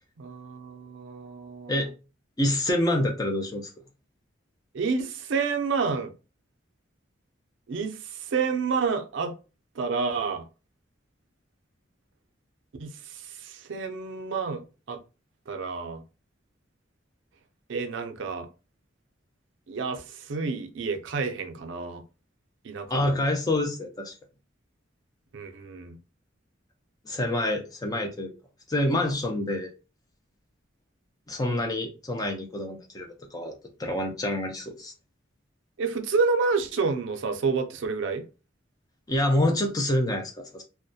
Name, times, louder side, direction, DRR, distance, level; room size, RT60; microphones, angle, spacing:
voice 1, 0.2-1.9 4.7-6.1 7.7-9.3 9.8-10.4 12.8-14.6 14.9-15.0 15.5-16.0 17.7-18.5 19.7-22.0 22.6-23.2 25.3-26.0 35.8-38.3, right 4 dB, 75° right, 0.4 m, -29 dB
voice 2, 2.4-3.7 22.9-24.1 27.1-28.3 28.7-29.7 31.3-33.1 33.3-33.5 33.8-34.9 39.1-40.6, left 1 dB, 20° left, 0.4 m, -27 dB
2.3 x 2.1 x 2.6 m
head